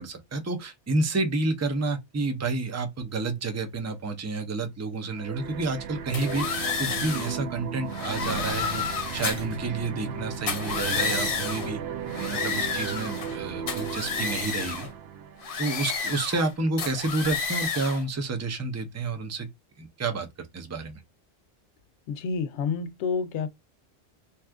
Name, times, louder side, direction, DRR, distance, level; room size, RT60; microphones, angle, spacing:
voice 1, 0.0-8.8 9.1-11.8 12.2-14.9 15.6-19.5 19.8-21.0, right 3 dB, 20° right, 0.4 m, -30 dB
sound 1, 5.1-15.6, right 7 dB, 70° right, 0.8 m, -35 dB
sound 2, 6.1-7.4 7.9-9.5 10.3-11.7 12.1-13.4 13.7-14.9 15.4-16.5 16.8-18.0, left 6 dB, 60° left, 0.8 m, -31 dB
voice 2, 22.1-23.5, left 5 dB, 90° left, 0.9 m, -29 dB
2.9 x 2.4 x 3.4 m
omnidirectional pair, 1.1 m